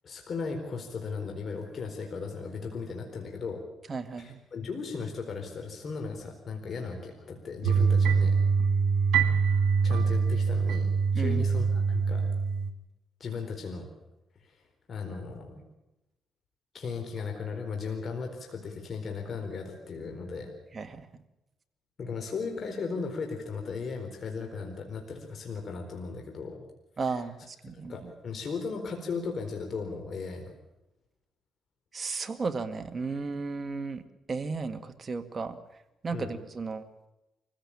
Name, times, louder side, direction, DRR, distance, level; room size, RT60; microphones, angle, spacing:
voice 1, 0.0-3.6 4.2-8.4 9.8-12.2 13.2-13.9 14.4-14.5 14.9-15.6 16.7-20.5 22.0-26.6 27.0-27.2 27.9-30.4 36.1-36.4, left 5 dB, 50° left, 3 dB, 4.3 m, -36 dB
voice 2, 3.9-4.4 11.1-11.4 20.7-21.1 27.0-28.1 31.9-34.0 34.3-35.6 36.0-36.8, right 4 dB, 35° right, 8 dB, 2.0 m, -34 dB
sound 1, 7.6-12.7, right 5 dB, 85° right, 2.2 m, -24 dB
24.5 x 16.0 x 8.7 m, 0.94 s
cardioid pair, 90°, 0 cm